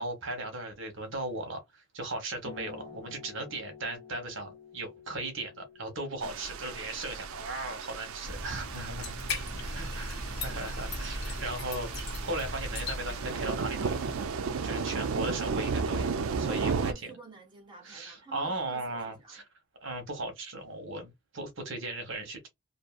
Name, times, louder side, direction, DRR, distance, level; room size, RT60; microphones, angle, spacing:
voice 1, 0.0-9.1 9.7-10.2 10.4-14.1 14.6-17.1 17.8-19.4 19.8-22.5, right 2 dB, 60° right, 1.0 m, -37 dB
sound 1, 2.4-9.6, left 6 dB, 15° left, 1.1 m, -52 dB
voice 2, 6.1-6.4 16.4-19.4, right 4 dB, 20° right, 1.2 m, -49 dB
sound 2, 6.2-16.9, right 5 dB, 80° right, 0.4 m, -34 dB
sound 3, 8.2-14.3, left 2 dB, 50° left, 1.2 m, -38 dB
2.7 x 2.6 x 2.4 m
head